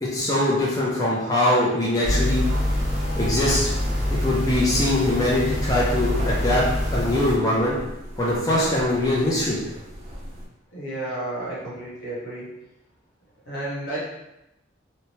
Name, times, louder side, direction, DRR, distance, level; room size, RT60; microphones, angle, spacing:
voice 1, 0.0-2.4 3.2-3.7 4.1-6.7 6.9-7.8 8.2-9.6, left 1 dB, 20° left, -6 dB, 0.5 m, -22 dB
sound 1, 2.0-7.4, left 1 dB, 5° right, 0.8 m, -25 dB
sound 2, 3.0-10.5, right 1 dB, 35° right, 0.6 m, -39 dB
voice 2, 10.7-12.5 13.4-14.0, right 1 dB, 70° left, -7 dB, 1.1 m, -32 dB
2.7 x 2.1 x 3.1 m, 0.90 s
head